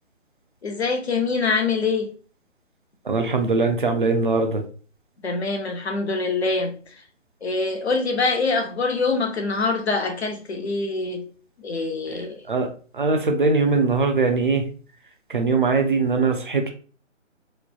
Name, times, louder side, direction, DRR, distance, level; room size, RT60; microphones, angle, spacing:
voice 1, 0.6-2.1 5.2-6.7 7.4-11.2 11.6-12.4, left 3 dB, 60° left, 0.8 m, -24 dB
voice 2, 3.1-4.6 12.5-12.7 12.9-14.7 15.3-16.7, right 4 dB, 45° right, 0.5 m, -21 dB
3.2 x 2.0 x 2.3 m
figure-of-eight pair, 155°, 38 cm